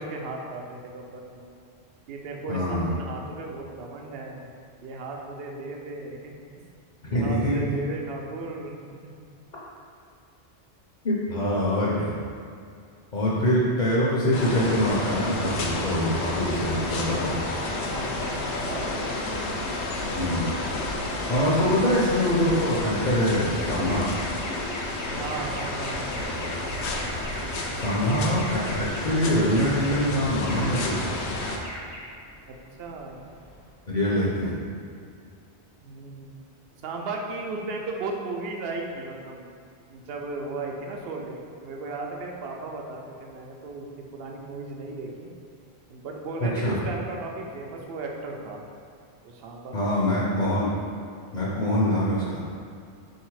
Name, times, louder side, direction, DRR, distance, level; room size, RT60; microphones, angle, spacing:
voice 1, 0.0-1.4 2.1-4.5 4.8-6.4 7.1-9.2 11.3-11.8 17.9-19.4 25.1-26.1 32.5-33.3 35.8-36.3 36.8-39.5 39.9-45.3 45.9-48.6 49.2-49.9 51.5-52.0, right 3 dB, 65° right, 0 dB, 0.8 m, -36 dB
voice 2, 2.5-2.9 7.1-7.8 11.0-12.2 13.1-17.4 20.1-20.5 21.0-24.1 27.8-31.1 33.9-34.6 46.4-46.8 49.7-50.7 51.3-52.4, equal, 50° left, -7 dB, 0.8 m, -24 dB
sound 1, 14.3-31.6, left 2 dB, 80° left, 0.9 m, -31 dB
Alarm, 16.2-33.8, equal, 25° left, 0.5 m, -42 dB
4.0 x 2.8 x 4.6 m, 2.4 s
omnidirectional pair, 1.1 m